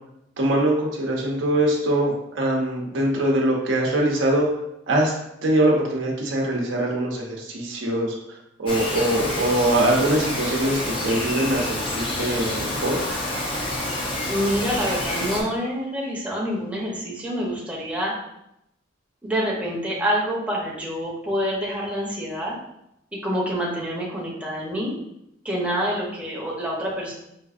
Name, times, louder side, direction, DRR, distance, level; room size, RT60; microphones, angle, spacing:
voice 1, 0.4-4.5 4.9-5.1 5.4-13.0, right 1 dB, 80° right, -1 dB, 0.7 m, -23 dB
Bird vocalization bird call bird song, 8.7-15.4, left 1 dB, 30° left, 0.5 m, -28 dB
voice 2, 14.2-18.1 19.2-22.6 23.2-24.9 25.4-27.1, equal, 5° right, -5 dB, 0.7 m, -27 dB
3.9 x 2.5 x 2.4 m, 0.81 s
head